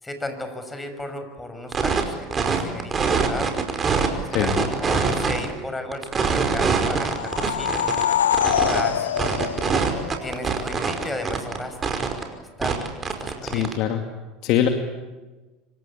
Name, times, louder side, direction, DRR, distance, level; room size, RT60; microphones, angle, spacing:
voice 1, 0.0-3.6 4.2-7.9 8.6-9.4 10.2-11.8 12.6-12.8 13.2-13.7, left 1 dB, 10° left, 7 dB, 6.4 m, -34 dB
sound 1, 1.7-2.0 2.3-4.1 4.3-5.5 5.9-8.8 9.2-11.6 11.8-12.2 12.6-13.7, right 5 dB, 30° right, 5.2 m, -23 dB
voice 2, 4.3-4.7 13.4-14.0 14.4-14.7, left 10 dB, 60° left, 5 dB, 2.4 m, -22 dB
sound 2, 6.9-10.5, left 10 dB, 85° left, 0.9 m, -24 dB
26.5 x 25.0 x 8.7 m, 1.2 s
hypercardioid pair, 85°, 0 cm